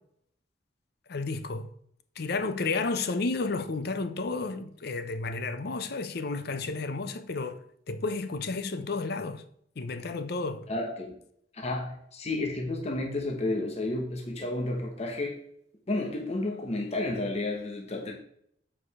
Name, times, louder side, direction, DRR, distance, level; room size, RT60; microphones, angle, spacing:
voice 1, 1.1-1.7 2.2-7.6 7.9-9.4 9.8-10.7, left 3 dB, 60° left, 0.7 m, -32 dB
voice 2, 10.7-11.2 11.6-15.4 15.9-18.2, left 2 dB, 35° left, 1.0 m, -31 dB
7.7 x 4.9 x 4.8 m
head